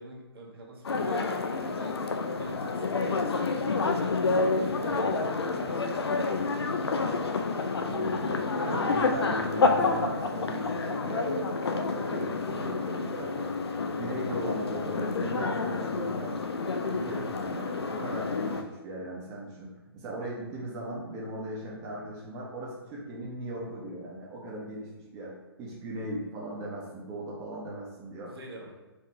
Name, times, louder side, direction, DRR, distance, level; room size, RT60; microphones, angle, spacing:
voice 1, 0.0-2.0 2.4-5.2 5.6-7.6 28.3-28.7, right 1 dB, 65° right, -3 dB, 1.2 m, -45 dB
sound 1, 0.8-18.6, left 3 dB, 75° left, 0.5 m, -29 dB
voice 2, 4.8-5.3 7.8-13.5 13.9-16.4 16.8-28.3, right 1 dB, 20° right, -5 dB, 0.9 m, -38 dB
4.3 x 3.0 x 3.1 m, 1.2 s
figure-of-eight pair, 130°, 13 cm